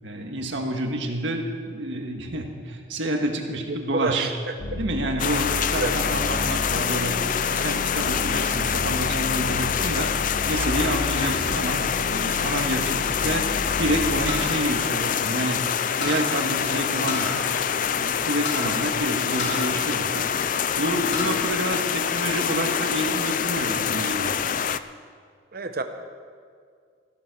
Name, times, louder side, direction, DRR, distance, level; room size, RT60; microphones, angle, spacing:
voice 1, 0.0-4.3 4.8-7.2 7.5-10.1 10.5-13.5 13.8-15.6 16.0-17.4 18.0-20.3 20.8-24.3, right 1 dB, 70° right, 3 dB, 1.8 m, -28 dB
voice 2, 3.7-4.5 5.8-5.9 21.3-21.4 25.5-25.8, right 3 dB, 50° right, 7 dB, 0.9 m, -28 dB
sound 1, 4.6-14.5, left 1 dB, 80° left, 1.2 m, -32 dB
sound 2, 5.2-24.8, left 8 dB, 45° left, 0.4 m, -26 dB
sound 3, 14.3-15.6 16.0-16.3 17.1-17.7 18.0-18.1 18.4-18.7 19.4-20.5 20.9-21.4 21.8-22.6, left 2 dB, 65° left, 2.6 m, -32 dB
15.0 x 11.5 x 6.3 m, 2.1 s
head